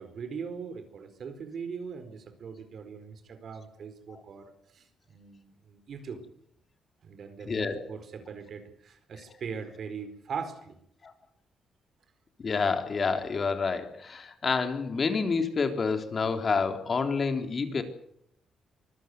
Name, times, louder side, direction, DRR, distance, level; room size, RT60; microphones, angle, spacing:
voice 1, 0.0-6.2 7.0-10.7, right 6 dB, 60° right, 10 dB, 4.4 m, -40 dB
voice 2, 7.4-7.8 9.1-9.3 11.0-11.1 12.4-17.8, left 4 dB, 40° left, 6 dB, 3.5 m, -28 dB
24.5 x 15.0 x 9.4 m, 0.72 s
cardioid pair, 100°, 0 cm